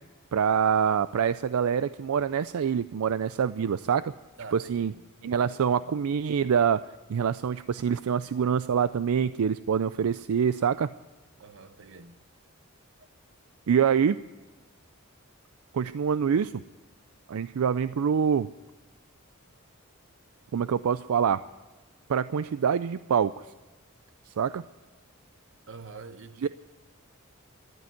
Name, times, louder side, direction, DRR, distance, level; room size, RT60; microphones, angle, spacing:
voice 1, 0.3-4.1 4.5-4.9 5.2-6.8 7.1-10.9 13.7-14.2 15.7-16.5 17.3-18.5 20.5-21.4 22.1-23.5 24.3-24.6 26.4-26.5, right 7 dB, 80° right, 0.4 m, -25 dB
voice 2, 4.4-5.0 5.4-6.0 11.4-12.2 13.0-13.1 25.7-26.5, right 4 dB, 60° right, 1.0 m, -46 dB
14.0 x 11.0 x 9.2 m
head